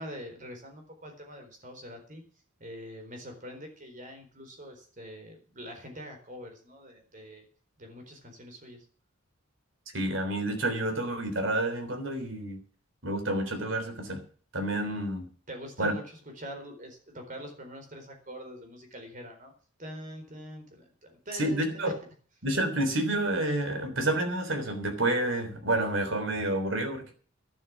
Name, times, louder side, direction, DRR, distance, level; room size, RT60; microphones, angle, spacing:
voice 1, 0.0-2.3 2.6-7.4 7.8-8.9 15.5-19.5 19.8-21.9, equal, 35° right, 5 dB, 4.2 m, -44 dB
voice 2, 9.9-12.6 13.0-14.2 14.5-15.3 15.8-15.9 21.4-21.9 22.4-27.1, right 1 dB, 60° right, 7 dB, 3.5 m, -29 dB
12.0 x 11.5 x 6.1 m, 0.43 s
head